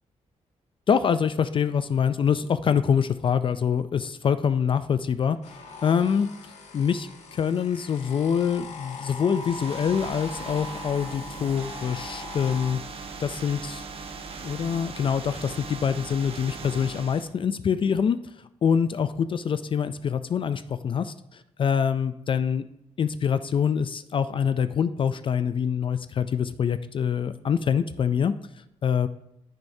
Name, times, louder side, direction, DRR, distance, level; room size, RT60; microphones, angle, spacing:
voice 1, 0.9-6.3 6.7-14.1 14.4-18.2 18.6-22.6 23.0-28.4 28.8-29.1, left 7 dB, 40° left, 12 dB, 0.3 m, -25 dB
sound 1, 5.4-12.7, left 4 dB, 65° left, 1.3 m, -41 dB
sound 2, 9.4-17.3, right 4 dB, 45° right, 1.0 m, -39 dB
14.5 x 6.4 x 2.7 m, 0.83 s
wide cardioid pair, 140°, 13 cm